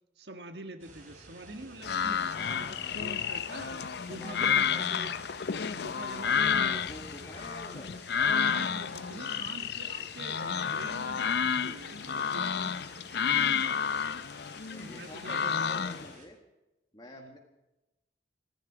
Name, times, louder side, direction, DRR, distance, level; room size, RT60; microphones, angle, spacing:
voice 1, 0.2-5.1 5.7-6.9 8.2-13.1 14.8-15.4 17.2-17.4, right 2 dB, 65° right, 8 dB, 1.6 m, -46 dB
sound 1, 0.8-16.3, right 2 dB, 45° right, 5.0 m, -53 dB
sound 2, 1.8-16.1, left 7 dB, 65° left, 0.6 m, -31 dB
voice 2, 2.3-3.4 4.1-4.9 6.2-7.9 14.7-16.4 16.9-17.4, left 1 dB, 25° left, 0 dB, 1.8 m, -48 dB
26.5 x 11.0 x 4.9 m, 0.99 s
head